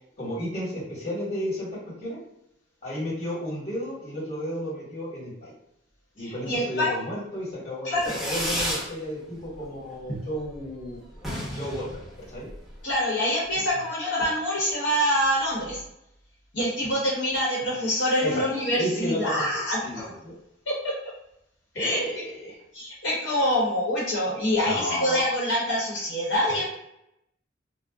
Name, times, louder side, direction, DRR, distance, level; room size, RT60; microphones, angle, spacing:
voice 1, 0.2-2.2 2.8-5.5 6.1-11.0 11.5-12.5 18.2-18.4 18.7-20.3 21.7-22.6 24.6-25.3 26.5-26.6, equal, 35° left, -6 dB, 1.4 m, -33 dB
voice 2, 6.2-7.0 7.8-8.1 10.1-10.2 12.8-15.8 16.5-20.1 20.7-21.0 21.7-22.0 22.7-26.7, equal, 70° left, -6 dB, 0.9 m, -25 dB
Fireworks, 8.0-8.9 9.3-9.8 10.1-10.2 10.4-10.6 10.8-10.9 11.1-12.8, equal, ahead, 0.9 m, -32 dB
2.5 x 2.0 x 3.4 m, 0.81 s
head